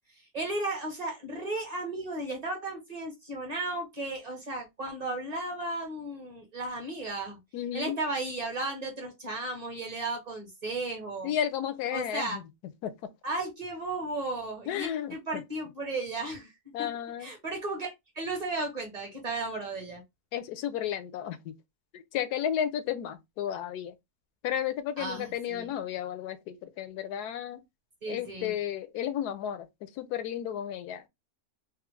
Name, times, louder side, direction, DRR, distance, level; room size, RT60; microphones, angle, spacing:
voice 1, 0.3-7.4 7.7-11.3 11.9-12.4 13.2-16.5 16.8-16.9 17.2-17.9 18.2-20.0 25.0-25.7 28.0-28.5, right 2 dB, 30° right, 0.9 m, -34 dB
voice 2, 7.5-8.0 11.2-12.4 12.8-12.9 14.7-15.4 16.7-17.3 20.3-21.5 21.9-23.9 24.4-27.6 28.1-31.1, left 10 dB, 85° left, 1.1 m, -33 dB
3.4 x 2.0 x 3.1 m
omnidirectional pair, 1.6 m